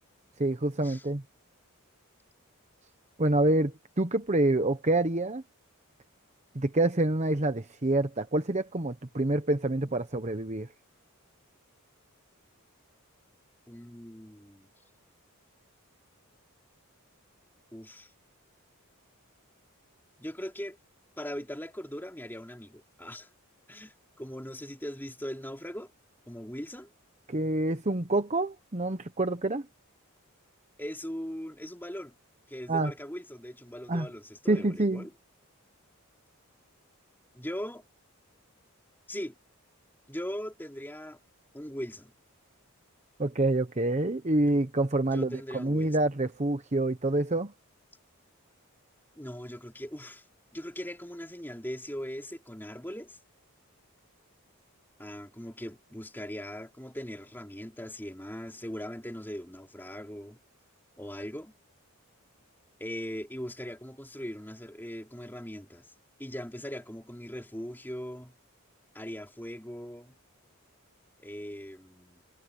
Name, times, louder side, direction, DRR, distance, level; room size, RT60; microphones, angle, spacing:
voice 1, 0.4-1.2 3.2-5.4 6.5-10.7 27.3-29.6 32.7-32.9 33.9-34.1 34.5-35.0 43.2-47.5, right 2 dB, 30° right, 0.9 m, -27 dB
voice 2, 13.7-14.7 17.7-18.1 20.2-20.8 21.2-23.3 23.7-25.9 26.3-26.9 30.8-32.1 32.5-35.1 37.3-37.8 39.1-39.4 40.1-41.2 41.5-42.1 45.1-46.1 49.2-50.2 50.5-53.2 55.0-60.4 61.0-61.5 62.8-65.9 66.2-68.3 68.9-70.2 71.2-72.2, equal, 10° left, 3.6 m, -40 dB
head